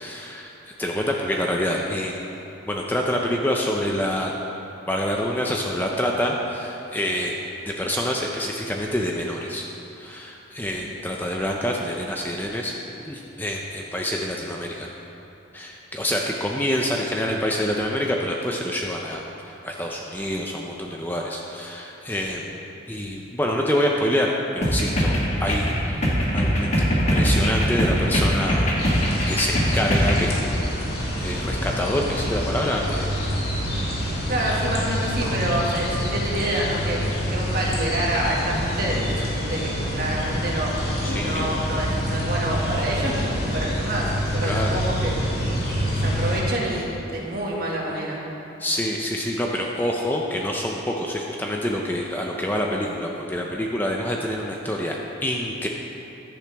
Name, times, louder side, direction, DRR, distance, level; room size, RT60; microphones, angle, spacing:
voice 1, 0.0-2.2 2.6-4.3 4.9-7.4 7.7-9.7 9.9-12.7 13.0-14.9 15.5-30.8 31.2-33.2 33.7-34.0 41.0-41.5 44.4-44.8 48.6-55.7, equal, 10° left, -1 dB, 0.6 m, -27 dB
sound 1, 24.6-30.3, equal, 35° left, 1.5 m, -22 dB
sound 2, 28.8-46.4, equal, 55° left, 2.7 m, -27 dB
voice 2, 34.3-37.0 37.3-40.7 41.2-45.1 45.8-48.2 52.7-52.9, right 1 dB, 50° right, -4 dB, 2.0 m, -27 dB
14.5 x 10.5 x 3.5 m, 3.0 s
head